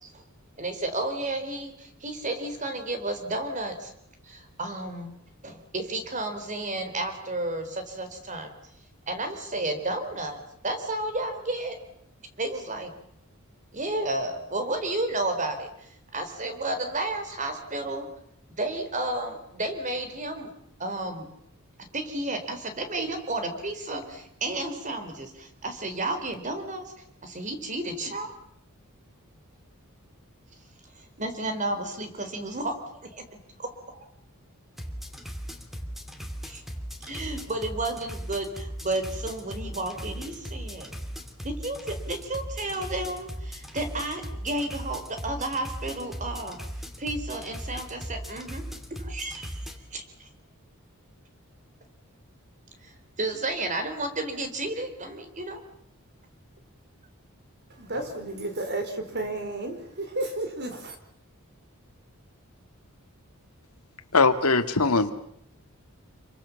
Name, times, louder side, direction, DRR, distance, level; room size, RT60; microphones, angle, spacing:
voice 1, 0.6-3.9 4.2-5.1 5.4-8.5 9.1-11.8 12.4-12.9 13.7-15.7 16.1-18.1 18.5-20.5 20.8-21.3 21.9-26.9 27.2-28.4 31.0-32.8 33.1-33.2 33.6-34.0 36.5-36.6 37.0-40.9 41.4-46.6 47.0-48.6 49.0-49.5 49.9-50.0 52.8-52.9 53.2-55.6, right 2 dB, 35° right, 7 dB, 4.1 m, -32 dB
sound 1, 34.7-49.8, equal, ahead, 2.7 m, -38 dB
voice 2, 57.8-59.8 60.2-60.9, right 2 dB, 50° right, 7 dB, 4.4 m, -32 dB
voice 3, 64.1-65.1, left 4 dB, 85° left, 8 dB, 2.1 m, -21 dB
28.0 x 24.0 x 7.2 m, 0.71 s
head